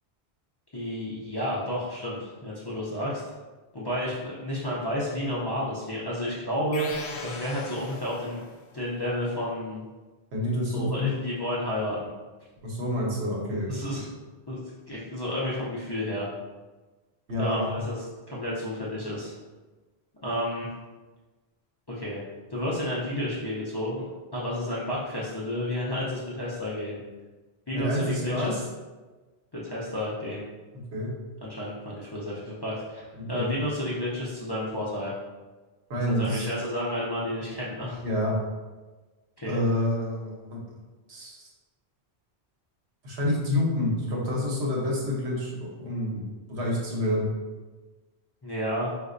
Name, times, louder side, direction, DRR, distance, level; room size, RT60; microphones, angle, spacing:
voice 1, 0.7-3.2 3.7-6.9 7.2-8.4 8.7-9.8 10.7-12.1 13.7-14.1 14.5-14.6 14.9-16.3 17.4-18.0 18.3-19.3 20.2-20.7 21.9-22.2 22.5-24.0 24.3-27.0 27.7-28.6 29.5-30.4 31.4-35.1 36.0-38.0 39.4-39.6 48.4-48.9, left 1 dB, 35° left, -7 dB, 0.4 m, -31 dB
sound 1, 6.7-8.6, left 3 dB, 80° left, 0.8 m, -39 dB
voice 2, 10.3-11.1 12.6-14.0 17.3-17.7 27.7-28.5 30.9-31.1 33.2-33.5 35.9-36.5 38.0-38.3 39.5-40.6 41.1-41.5 43.0-47.3, left 1 dB, 90° right, -3 dB, 1.1 m, -28 dB
4.1 x 2.5 x 2.5 m, 1.3 s
omnidirectional pair, 1.1 m